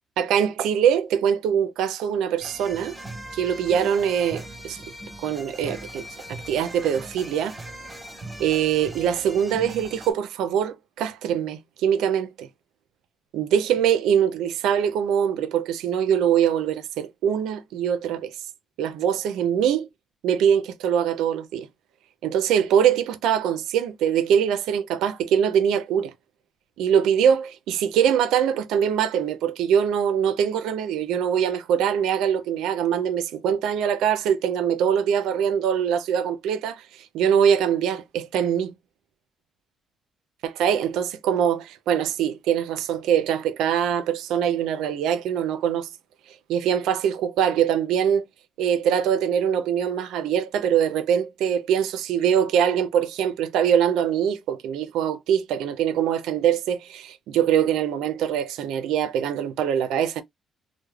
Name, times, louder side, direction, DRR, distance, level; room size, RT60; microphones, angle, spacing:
voice 1, 0.2-3.0 3.3-4.8 5.2-7.5 8.4-12.5 13.3-18.3 18.8-19.9 20.2-21.7 22.2-26.1 26.8-36.8 37.1-38.7 40.4-45.9 46.5-48.2 48.6-60.2, right 8 dB, 90° right, 0.4 m, -23 dB
sound 1, 2.4-10.1, right 1 dB, 5° right, 1.2 m, -40 dB
3.1 x 2.0 x 2.2 m
cardioid pair, 90°, 0 cm